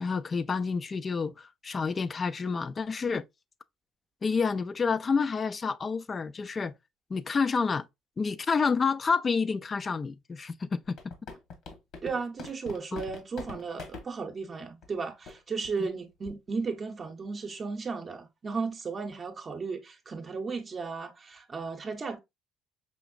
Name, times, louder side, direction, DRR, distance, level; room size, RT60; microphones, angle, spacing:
voice 1, 0.0-3.2 4.2-6.7 7.1-7.9 8.2-11.0 12.9-13.0, left 5 dB, 30° left, 0.3 m, -29 dB
sound 1, 10.8-14.1 14.8-14.9 15.3-15.4 15.6-15.9 16.3-16.5, left 4 dB, 65° left, 1.3 m, -43 dB
voice 2, 12.0-22.2, right 4 dB, 35° right, 0.7 m, -35 dB
5.0 x 2.9 x 2.4 m
cardioid pair, 115°, 0 cm